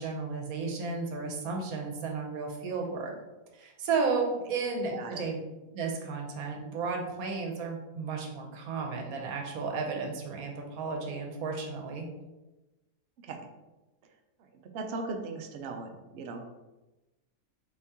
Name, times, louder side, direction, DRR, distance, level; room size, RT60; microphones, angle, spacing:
voice 1, 0.0-3.1 3.5-5.4 5.7-12.1, right 4 dB, 85° right, 1 dB, 1.2 m, -33 dB
voice 2, 14.7-16.5, right 3 dB, 65° right, 4 dB, 0.7 m, -38 dB
4.3 x 2.8 x 3.5 m, 1.1 s
omnidirectional pair, 1.5 m